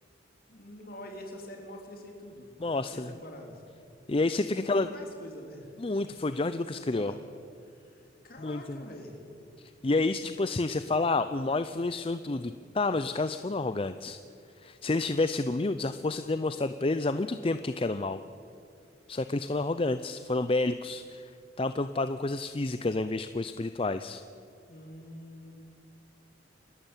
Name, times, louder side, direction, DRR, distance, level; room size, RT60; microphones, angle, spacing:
voice 1, 0.5-3.6 4.5-5.7 6.1-6.3 6.5-7.2 7.7-9.2 24.7-25.6, left 1 dB, 50° left, 2 dB, 3.5 m, -45 dB
voice 2, 2.6-3.1 4.1-4.9 5.8-7.1 8.4-8.8 9.6-14.2 14.6-18.2 19.1-21.3 21.6-24.2, left 2 dB, 30° left, 11 dB, 0.5 m, -29 dB
28.5 x 12.5 x 9.0 m, 2.4 s
head